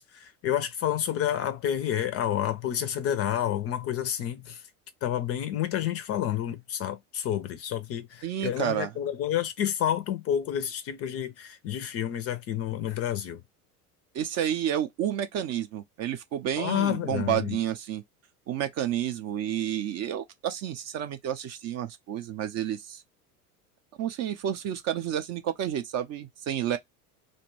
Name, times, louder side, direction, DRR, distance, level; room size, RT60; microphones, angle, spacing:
voice 1, 0.0-4.6 5.0-13.4 16.6-17.6, left 10 dB, 35° left, 0.4 m, -29 dB
voice 2, 8.2-8.9 14.1-18.0 18.5-23.0 24.0-26.8, right 10 dB, 35° right, 0.5 m, -30 dB
2.6 x 2.1 x 3.1 m
hypercardioid pair, 75°, 46 cm